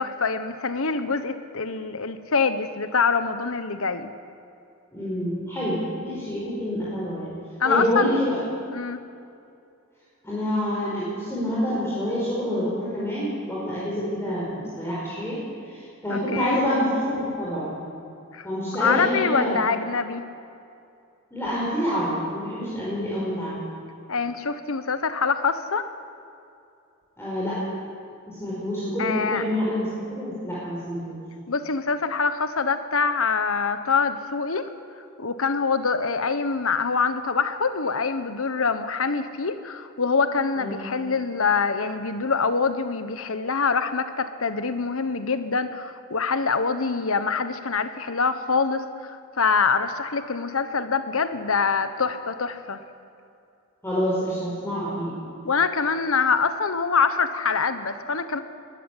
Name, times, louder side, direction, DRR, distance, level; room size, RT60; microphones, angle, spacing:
voice 1, 0.0-4.1 7.6-8.2 8.7-9.0 16.1-16.6 18.3-18.5 18.8-20.2 24.1-25.8 29.0-29.4 31.5-34.7 35.2-48.8 49.4-52.8 55.4-58.4, left 5 dB, 70° left, 11 dB, 1.2 m, -25 dB
voice 2, 4.9-7.4 7.6-8.4 10.2-15.4 15.7-17.7 18.4-19.6 21.3-23.6 27.2-27.5 28.3-31.2 40.6-40.8 53.8-55.1, equal, 10° left, -8 dB, 4.9 m, -27 dB
20.5 x 13.0 x 9.9 m, 2.6 s
head